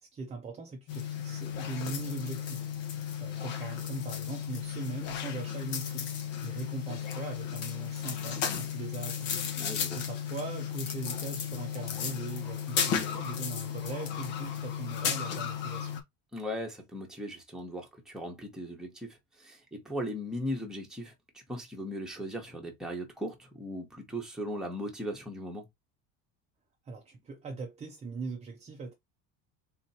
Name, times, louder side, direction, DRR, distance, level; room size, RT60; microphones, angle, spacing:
voice 1, 0.0-2.7 3.2-6.1 6.4-9.3 9.9-15.9 26.9-28.9, right 4 dB, 15° right, 0.4 m, -40 dB
sound 1, 0.9-16.0, left 8 dB, 80° left, 1.4 m, -34 dB
voice 2, 9.6-10.0 16.3-25.7, equal, ahead, 1.0 m, -38 dB
3.9 x 3.0 x 4.1 m
cardioid pair, 170°, 42 cm